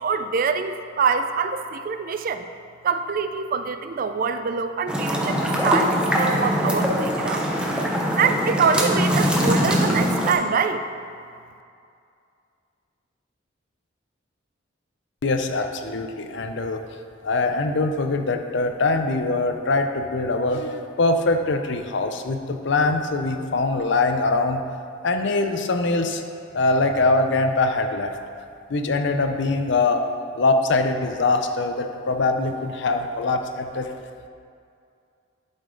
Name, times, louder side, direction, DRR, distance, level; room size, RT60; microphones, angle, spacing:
voice 1, 0.0-2.5 2.8-7.5 8.2-10.9, right 5 dB, 45° right, 9 dB, 0.4 m, -24 dB
sound 1, 4.9-10.3, equal, 5° right, 0.7 m, -22 dB
voice 2, 15.2-16.8 17.2-24.6 25.0-26.2 26.5-28.1 28.7-30.0 30.4-33.9, left 3 dB, 60° left, 6 dB, 0.6 m, -23 dB
11.5 x 5.2 x 3.8 m, 2.4 s
head